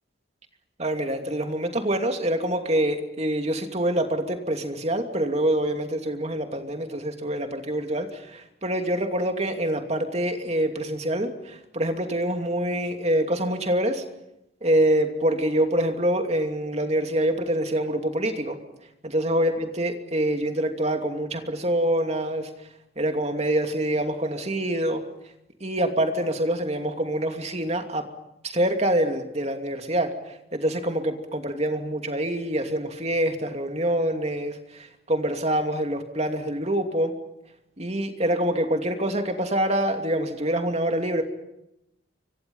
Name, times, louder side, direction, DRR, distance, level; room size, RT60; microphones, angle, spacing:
voice 1, 0.8-14.0 14.6-18.6 19.0-22.5 23.0-25.0 25.6-28.0 28.4-37.1 37.8-41.2, right 1 dB, 35° right, 5 dB, 2.7 m, -25 dB
29.0 x 25.0 x 5.6 m, 0.86 s
head